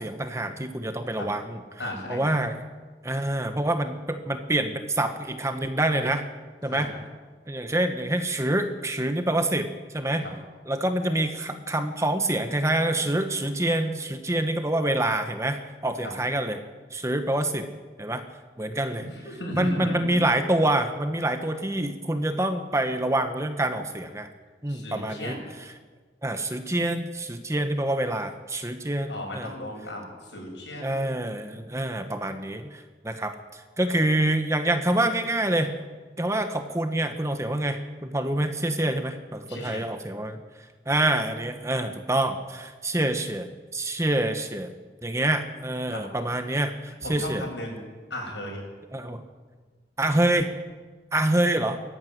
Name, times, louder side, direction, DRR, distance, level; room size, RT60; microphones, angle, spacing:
voice 1, 0.0-1.6 2.1-2.6 3.0-6.3 6.6-6.9 7.5-10.2 10.7-16.6 16.9-17.7 18.0-18.2 18.6-19.0 19.6-24.3 24.6-25.4 26.2-29.5 30.8-35.8 36.2-40.4 40.9-43.5 43.7-44.7 45.0-47.4 48.9-49.2 50.0-50.5 51.1-51.8, right 1 dB, 15° right, 7 dB, 1.1 m, -26 dB
voice 2, 1.8-2.2 6.7-6.9 10.2-10.3 16.0-16.1 19.0-20.1 24.7-25.4 29.1-31.0 39.5-39.9 45.9-46.0 47.0-47.8 48.1-48.7, equal, 75° left, 0 dB, 7.8 m, -35 dB
19.0 x 14.5 x 9.5 m, 1.4 s
head